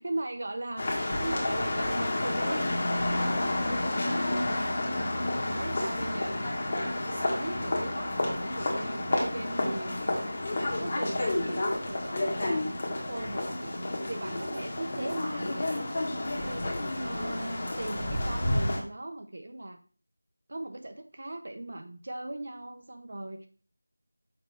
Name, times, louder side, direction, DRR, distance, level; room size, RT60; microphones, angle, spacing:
voice 1, 0.0-19.8 20.5-23.5, right 1 dB, 45° right, 6 dB, 0.7 m, -39 dB
sound 1, 0.8-18.8, left 1 dB, 30° left, 1.4 m, -30 dB
6.6 x 4.9 x 3.4 m, 0.42 s
figure-of-eight pair, 170°, 0 cm